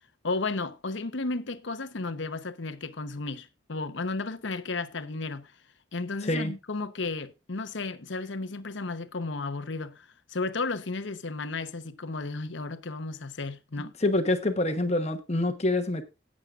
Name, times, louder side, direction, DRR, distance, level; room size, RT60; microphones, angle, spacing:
voice 1, 0.2-5.5 5.9-13.9, left 3 dB, 70° left, 0.9 m, -33 dB
voice 2, 6.2-6.5 14.0-16.0, left 2 dB, 35° left, 1.1 m, -26 dB
18.5 x 7.5 x 2.5 m
head